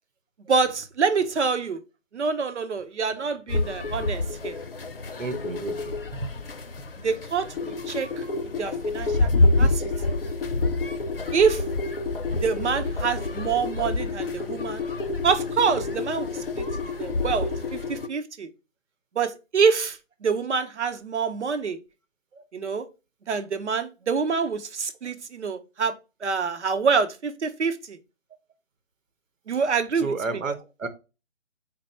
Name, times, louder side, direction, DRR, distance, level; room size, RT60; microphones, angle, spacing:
voice 1, 0.5-1.8 2.1-4.6 7.0-8.2 8.6-9.3 9.6-9.8 11.3-11.6 12.3-14.8 15.2-16.6 17.0-18.5 19.2-21.8 22.5-22.9 23.3-25.9 26.2-28.0 29.5-30.1, right 5 dB, 60° right, 0.8 m, -26 dB
sound 1, 3.5-18.1, left 3 dB, 50° left, 0.5 m, -27 dB
voice 2, 5.2-6.4 22.3-22.4 29.5-29.6 29.9-30.9, right 3 dB, 85° right, 1.1 m, -32 dB
4.3 x 2.2 x 4.3 m
hypercardioid pair, 175°, 38 cm